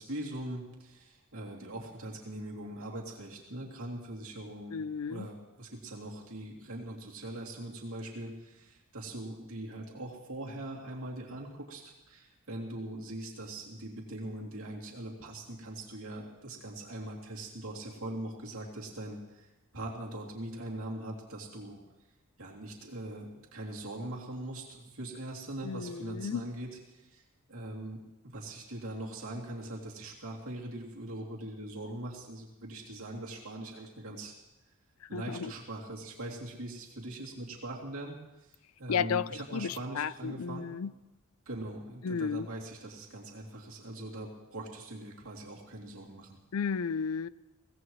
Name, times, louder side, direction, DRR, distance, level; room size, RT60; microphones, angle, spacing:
voice 1, 0.0-4.8 5.1-19.5 19.7-21.8 22.4-27.2 27.5-34.3 35.1-38.5 38.8-40.7 41.5-46.4, right 1 dB, 70° right, -2 dB, 2.9 m, -41 dB
voice 2, 4.7-5.3 25.6-26.4 35.1-35.5 38.9-40.9 42.0-42.5 46.5-47.3, left 6 dB, 70° left, 18 dB, 0.4 m, -33 dB
23.5 x 17.0 x 3.2 m, 0.98 s
head